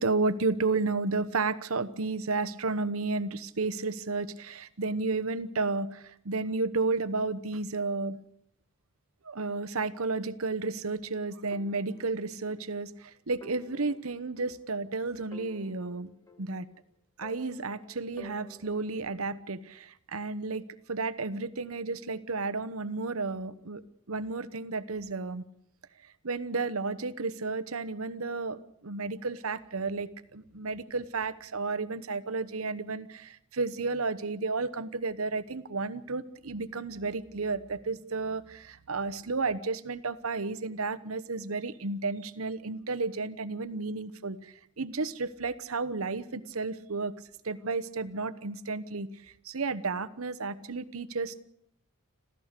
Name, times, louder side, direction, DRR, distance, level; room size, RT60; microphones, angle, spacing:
voice 1, 0.0-8.2 9.2-16.1 16.4-16.7 17.2-20.6 20.9-23.8 24.1-25.4 26.2-47.1 47.4-51.4, right 3 dB, 80° right, 14 dB, 1.0 m, -32 dB
sound 1, 11.5-12.7 13.0-13.1 13.4-14.9 15.3-16.8 17.2-19.1, right 1 dB, 15° left, 1.6 m, -52 dB
26.5 x 15.5 x 6.7 m, 0.71 s
head